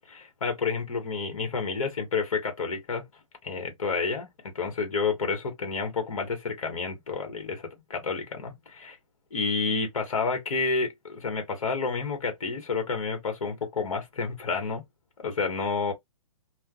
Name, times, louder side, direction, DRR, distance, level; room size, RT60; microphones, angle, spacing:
voice 1, 0.1-3.1 3.4-8.9 9.3-14.8 15.2-15.9, left 4 dB, 70° left, 1.5 m, -30 dB
3.2 x 2.3 x 2.4 m
hypercardioid pair, 145°, 18 cm